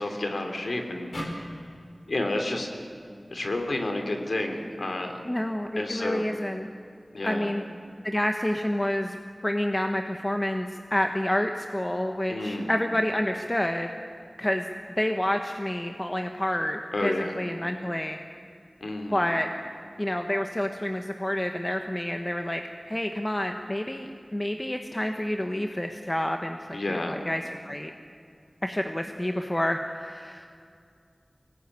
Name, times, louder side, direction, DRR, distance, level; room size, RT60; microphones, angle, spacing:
voice 1, 0.0-1.4 2.1-2.7 3.3-5.2 5.8-6.2 7.1-7.5 12.3-12.7 16.9-17.3 18.8-19.2 26.7-27.2, left 2 dB, 90° left, 4 dB, 2.9 m, -30 dB
sound 1, 1.1-4.4, equal, 70° left, 4.2 m, -41 dB
voice 2, 5.2-6.7 7.2-7.6 8.0-9.2 9.4-13.9 14.4-14.7 15.0-18.2 19.1-19.5 20.0-22.6 22.9-27.9 28.6-30.5, left 1 dB, 25° left, 5 dB, 1.2 m, -28 dB
23.0 x 19.5 x 9.7 m, 2.4 s
wide cardioid pair, 60°, 0 cm